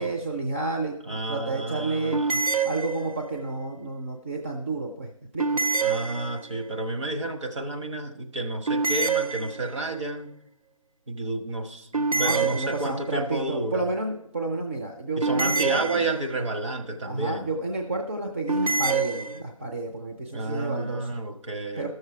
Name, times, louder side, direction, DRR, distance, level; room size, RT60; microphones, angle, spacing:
voice 1, 0.0-2.2 2.6-5.6 12.1-16.0 17.0-21.2 21.8-21.9, right 2 dB, 20° right, 0 dB, 0.5 m, -31 dB
voice 2, 1.1-2.4 5.8-10.3 11.1-13.9 15.2-17.5 20.3-21.9, right 2 dB, 60° right, 4 dB, 1.3 m, -31 dB
sound 1, 2.1-3.4 5.4-6.7 8.7-10.0 11.9-13.2 15.2-16.5 18.5-19.4, right 4 dB, 85° right, 0.9 m, -27 dB
13.5 x 6.6 x 4.6 m, 0.78 s
figure-of-eight pair, 155°, 18 cm